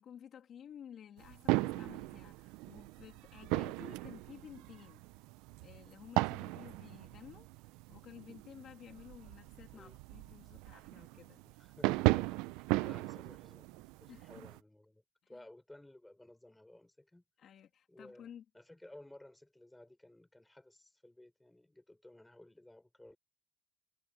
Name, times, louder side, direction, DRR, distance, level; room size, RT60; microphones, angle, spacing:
voice 1, 0.0-5.0 5.6-11.4 12.7-13.0 14.1-14.5 15.2-15.4 17.4-18.4, left 9 dB, 35° left, 2.9 m, -54 dB
sound 1, 1.2-14.6, right 21 dB, 75° right, 0.6 m, -37 dB
voice 2, 11.4-15.0 15.3-17.2 17.9-18.3 18.5-23.2, left 1 dB, 5° left, 6.5 m, -57 dB
cardioid pair, 170°, 0 cm